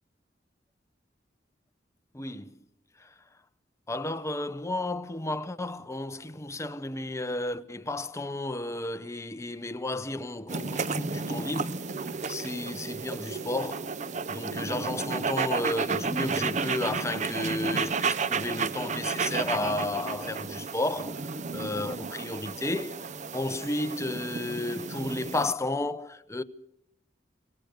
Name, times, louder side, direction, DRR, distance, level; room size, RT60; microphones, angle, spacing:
voice 1, 2.1-2.5 3.9-11.8 12.3-13.9 14.3-21.2 21.5-23.0 23.3-26.4, left 2 dB, 15° left, 0.8 m, -32 dB
sound 1, 10.5-25.5, right 5 dB, 40° right, 0.7 m, -32 dB
26.5 x 16.0 x 6.6 m
head